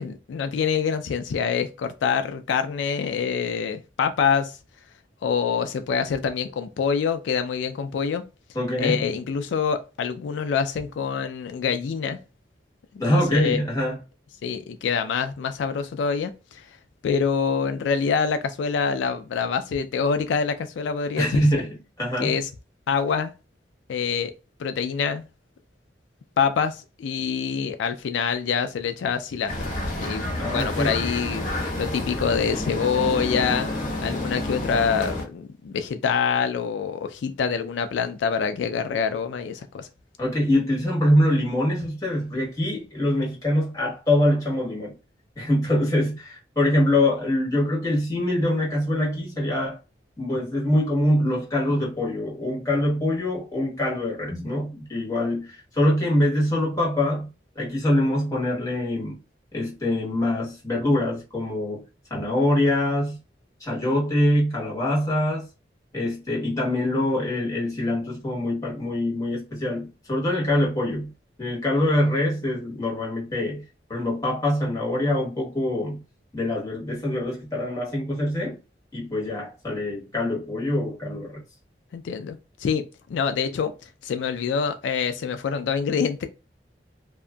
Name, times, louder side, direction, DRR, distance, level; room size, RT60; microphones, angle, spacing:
voice 1, 0.0-4.5 5.2-8.2 8.8-12.2 13.1-13.6 14.4-16.7 17.0-21.4 22.2-22.5 22.9-23.3 23.9-24.3 24.6-25.2 26.4-29.7 30.0-33.7 34.0-39.9 81.9-82.8 83.1-83.7 84.0-86.3, left 6 dB, 85° left, 0.3 m, -26 dB
voice 2, 8.5-9.0 13.0-14.0 21.2-21.7 22.0-22.4 30.3-30.9 40.2-44.9 45.4-49.8 50.2-57.3 57.5-59.2 59.5-61.8 62.1-63.2 63.6-65.5 65.9-71.1 71.4-73.6 73.9-76.0 76.3-78.6 78.9-81.4, left 1 dB, 20° left, 1.2 m, -24 dB
sound 1, 29.5-35.3, left 1 dB, 45° left, 0.8 m, -29 dB
2.7 x 2.4 x 2.2 m
head